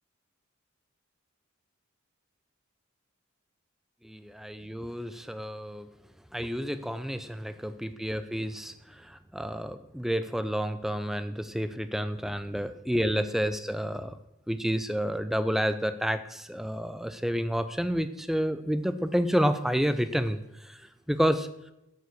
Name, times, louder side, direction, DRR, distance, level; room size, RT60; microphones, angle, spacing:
voice 1, 4.0-5.9 6.3-8.7 9.1-14.2 14.5-20.4 21.1-21.5, equal, ahead, 11 dB, 0.4 m, -29 dB
10.5 x 4.9 x 8.2 m, 0.87 s
head